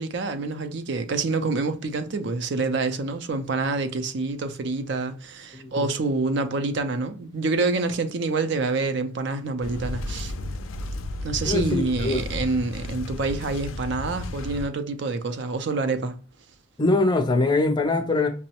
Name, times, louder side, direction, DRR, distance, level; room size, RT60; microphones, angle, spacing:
voice 1, 0.0-10.3 11.2-16.2, right 3 dB, 60° right, 0.4 m, -27 dB
voice 2, 5.5-5.9 11.4-12.2 16.8-18.3, left 2 dB, 20° left, 0.5 m, -23 dB
sound 1, 9.6-14.7, left 2 dB, 85° left, 0.4 m, -33 dB
5.3 x 2.0 x 2.8 m
head